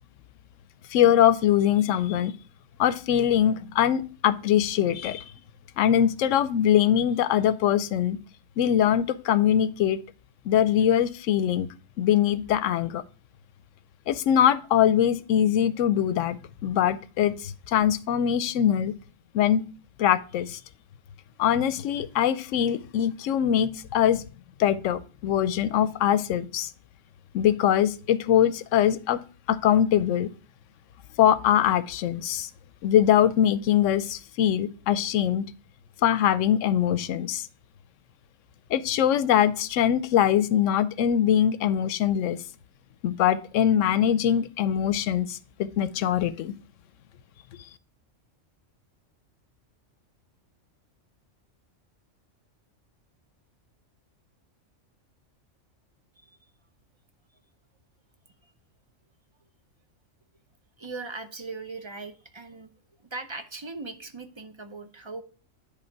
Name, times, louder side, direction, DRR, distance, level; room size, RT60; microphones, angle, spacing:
voice 1, 0.9-2.3 2.8-5.2 5.8-8.2 8.6-10.0 10.5-11.7 12.0-13.0 14.1-18.9 19.3-19.6 20.0-20.6 21.4-24.2 24.6-26.7 27.3-29.2 29.5-30.3 31.2-32.5 32.8-35.5 36.0-37.5 38.7-42.4 43.0-46.5, left 10 dB, 75° left, 15 dB, 0.9 m, -22 dB
voice 2, 60.8-62.7 63.1-65.2, right 3 dB, 35° right, 8 dB, 0.5 m, -39 dB
10.0 x 3.7 x 4.5 m, 0.37 s
omnidirectional pair, 1.3 m